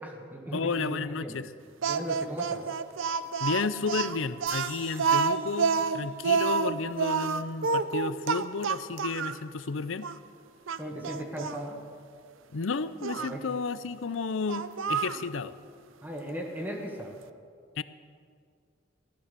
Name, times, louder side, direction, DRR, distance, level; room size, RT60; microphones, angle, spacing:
voice 1, 0.0-1.3 1.8-2.7 10.8-11.8 13.2-13.4 16.0-17.2, equal, 10° right, 0 dB, 1.6 m, -37 dB
voice 2, 0.5-1.5 3.4-10.1 12.5-15.6 17.8-17.9, left 4 dB, 75° left, 15 dB, 0.6 m, -32 dB
Speech, 1.8-9.4 10.0-10.2 10.7-11.6 13.0-13.3 14.5-15.2, right 5 dB, 80° right, 0.6 m, -28 dB
sound 1, 4.5-7.7, right 5 dB, 50° right, 2.3 m, -48 dB
16.0 x 12.0 x 6.8 m, 2.2 s
head